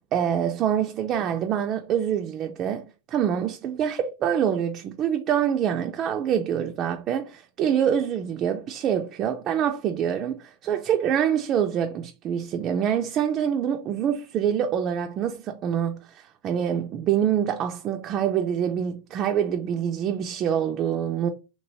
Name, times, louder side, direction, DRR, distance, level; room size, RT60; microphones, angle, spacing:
voice 1, 0.1-21.3, right 9 dB, 30° right, 0.3 m, -25 dB
3.0 x 2.8 x 2.7 m
supercardioid pair, 145°, 0 cm